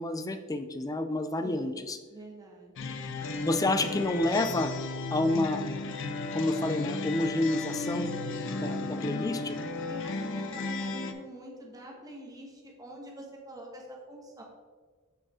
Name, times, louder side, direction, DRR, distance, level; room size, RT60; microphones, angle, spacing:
voice 1, 0.0-2.0 3.4-4.7 5.1-5.6 6.3-8.1 8.6-9.6, left 2 dB, 15° left, 8 dB, 0.4 m, -29 dB
voice 2, 1.4-1.8 2.1-2.7 8.5-9.2 9.9-14.4, right 1 dB, 15° right, -1 dB, 1.2 m, -45 dB
sound 1, 2.8-11.1, left 3 dB, 60° left, 0.6 m, -34 dB
6.4 x 5.0 x 4.3 m, 1.5 s
head